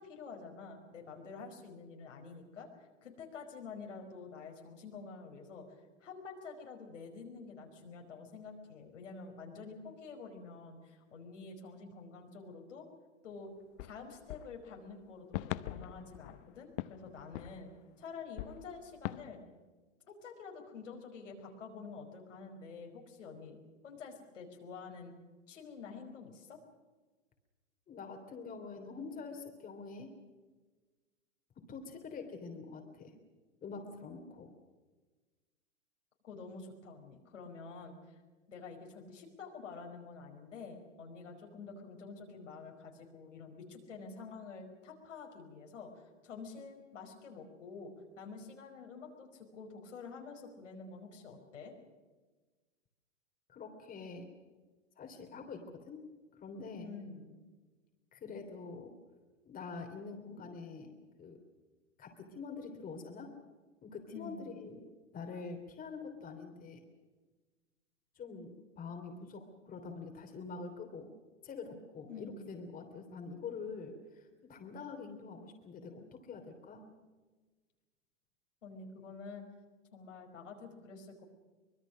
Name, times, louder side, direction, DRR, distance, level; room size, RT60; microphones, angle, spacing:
voice 1, 0.0-12.9 13.2-13.5 13.8-17.7 18.0-19.4 20.1-23.6 23.8-25.1 25.5-26.6 36.2-38.2 38.5-51.7 56.8-57.3 64.1-64.5 72.1-72.5 78.6-79.4 79.9-81.3, left 4 dB, 80° left, 2 dB, 5.1 m, -48 dB
sound 1, 13.3-13.4 13.8-18.0 18.4-19.3, left 16 dB, 50° left, 0.8 m, -43 dB
voice 2, 27.9-30.1 31.6-33.1 33.6-34.5 53.5-54.3 55.0-56.0 56.4-56.9 58.1-58.9 59.4-60.9 61.2-61.4 62.0-63.3 63.8-64.9 65.1-66.8 68.1-71.1 71.4-76.9, left 4 dB, 25° left, 4 dB, 3.2 m, -45 dB
24.5 x 21.0 x 6.4 m, 1.3 s
hypercardioid pair, 110°, 36 cm